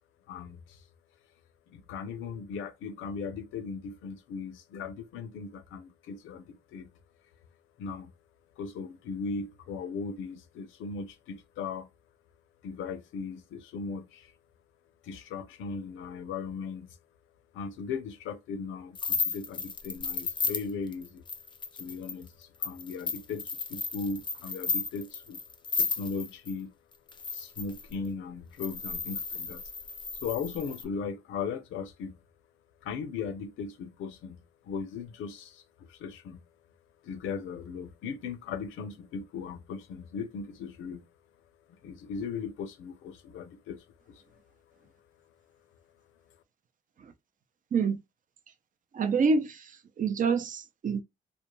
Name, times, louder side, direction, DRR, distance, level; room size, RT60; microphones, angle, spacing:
voice 1, 0.3-0.8 1.7-6.9 7.8-8.1 8.6-11.9 12.6-14.3 15.0-16.9 17.5-21.2 21.8-25.4 25.8-26.7 27.3-29.6 30.2-32.1 32.8-34.4 34.7-35.6 35.9-36.4 37.0-41.0 41.7-44.2, left 5 dB, 85° left, 0.6 m, -38 dB
sound 1, 18.9-26.5 27.1-27.9 28.6-30.8, left 5 dB, 25° left, 0.4 m, -34 dB
voice 2, 48.9-49.5 50.0-51.0, right 5 dB, 40° right, 0.5 m, -26 dB
2.4 x 2.2 x 2.9 m
cardioid pair, 90°, 20 cm